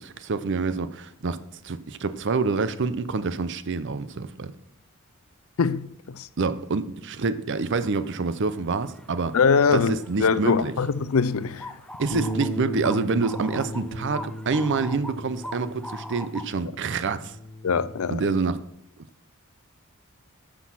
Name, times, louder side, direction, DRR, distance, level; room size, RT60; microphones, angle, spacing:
voice 1, 0.0-4.5 6.4-9.4 9.7-10.7 12.0-17.4 18.1-18.6 19.0-19.1, right 4 dB, 55° right, 0.6 m, -27 dB
voice 2, 5.6-6.3 9.3-9.9 10.2-11.8 17.6-18.3, left 5 dB, 70° left, 0.5 m, -22 dB
sound 1, 7.7-7.9 8.3-16.7, left 1 dB, 5° left, 0.4 m, -42 dB
Bass guitar, 12.1-18.4, equal, 35° left, 0.9 m, -36 dB
9.7 x 6.1 x 6.2 m
head